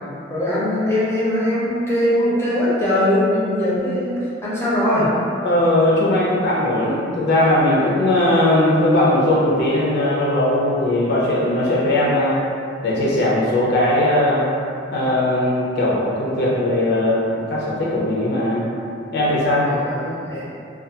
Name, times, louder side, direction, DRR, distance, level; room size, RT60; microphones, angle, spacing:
voice 1, 0.3-5.2 19.6-20.5, left 1 dB, 15° left, -9 dB, 0.5 m, -21 dB
voice 2, 5.4-12.4 12.8-14.5 14.9-18.6 19.1-19.7, left 1 dB, 60° left, -6 dB, 0.5 m, -19 dB
2.3 x 2.3 x 2.7 m, 2.5 s
head